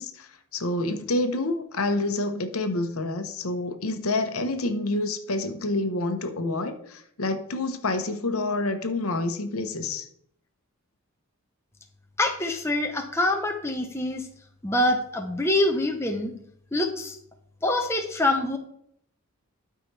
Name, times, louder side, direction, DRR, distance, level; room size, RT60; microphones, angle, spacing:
voice 1, 0.0-10.1, left 2 dB, 80° left, 8 dB, 1.0 m, -28 dB
voice 2, 12.2-14.3 14.6-16.3 16.7-17.2 17.6-18.6, left 1 dB, 10° left, 3 dB, 0.8 m, -25 dB
12.5 x 4.8 x 3.3 m, 0.68 s
head